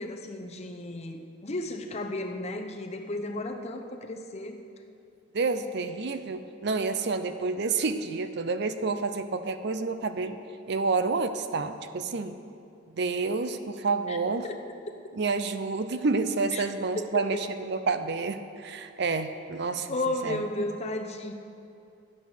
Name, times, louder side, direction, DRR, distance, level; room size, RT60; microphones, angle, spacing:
voice 1, 0.0-4.6 14.1-14.2 16.5-16.7 17.0-17.4 19.9-21.3, left 2 dB, 35° left, 3 dB, 0.8 m, -34 dB
voice 2, 5.3-10.4 10.7-12.4 13.0-14.4 15.2-19.9 20.2-20.4, right 4 dB, 60° right, 10 dB, 0.6 m, -29 dB
12.0 x 8.7 x 6.4 m, 2.6 s
head